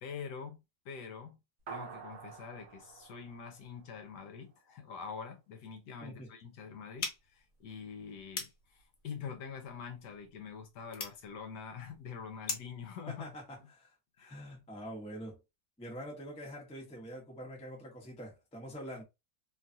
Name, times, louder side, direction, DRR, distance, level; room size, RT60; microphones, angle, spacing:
voice 1, 0.0-1.4 1.7-13.2 14.2-14.4, left 6 dB, 75° left, 1.2 m, -45 dB
sound 1, 1.7-4.4, right 6 dB, 55° right, 0.9 m, -48 dB
sound 2, 7.0-12.8, left 4 dB, 55° left, 1.1 m, -44 dB
voice 2, 13.1-15.4 15.8-19.0, equal, 5° left, 0.5 m, -45 dB
3.1 x 2.4 x 2.6 m
omnidirectional pair, 2.0 m